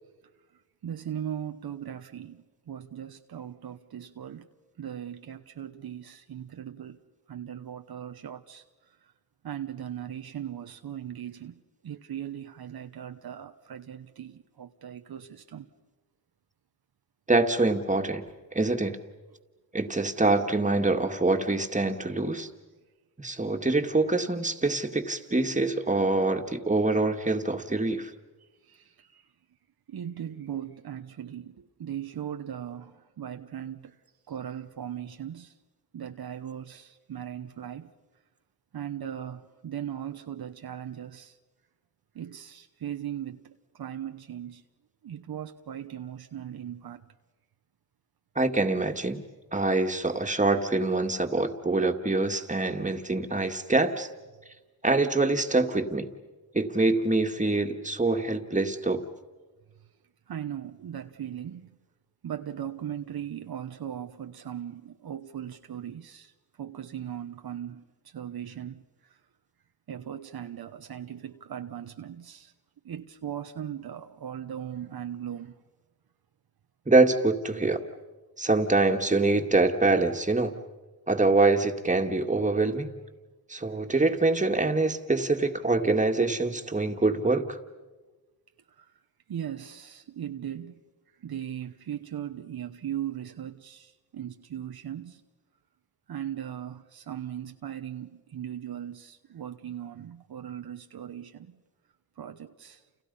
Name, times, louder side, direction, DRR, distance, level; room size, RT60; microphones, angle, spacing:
voice 1, 0.8-4.5 4.8-7.0 7.3-8.6 9.4-15.7 28.7-29.2 29.9-34.0 34.3-35.5 35.9-37.9 38.7-41.4 42.1-44.6 45.0-47.0 60.3-61.7 62.2-66.3 66.6-68.8 69.9-72.5 72.8-75.5 88.8-88.9 89.3-90.8 91.2-95.2 96.1-101.6 102.2-102.8, right 10 dB, 70° right, 1.1 m, -38 dB
voice 2, 17.3-18.2 18.5-19.0 19.7-22.5 23.2-28.1 48.4-49.2 49.5-54.1 54.8-56.1 56.5-59.0 76.9-77.8 78.4-80.6 81.1-82.9 83.5-87.6, right 2 dB, 20° right, 2.2 m, -25 dB
30.0 x 29.5 x 5.7 m
cardioid pair, 65°, 38 cm